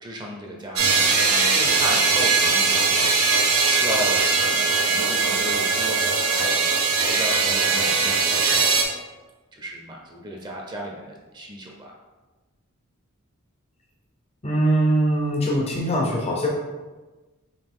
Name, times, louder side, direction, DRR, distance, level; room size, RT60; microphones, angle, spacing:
voice 1, 0.0-3.1 3.7-4.2 4.5-8.5 9.5-12.0, right 1 dB, 20° right, -1 dB, 0.6 m, -35 dB
sound 1, 0.8-8.8, right 4 dB, 80° right, 0.8 m, -20 dB
voice 2, 14.4-16.5, right 1 dB, 30° left, -2 dB, 0.6 m, -22 dB
5.0 x 2.8 x 3.6 m, 1.2 s
head